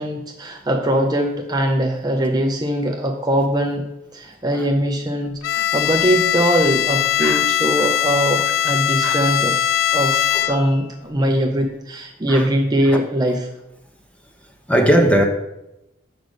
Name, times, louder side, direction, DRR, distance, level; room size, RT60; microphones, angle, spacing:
voice 1, 0.0-3.9 4.1-13.5, right 1 dB, 20° right, 0.6 m, -21 dB
Bowed string instrument, 5.4-10.9, left 10 dB, 75° left, 0.3 m, -20 dB
voice 2, 14.7-15.2, equal, 5° left, 0.9 m, -17 dB
7.8 x 5.1 x 6.4 m
head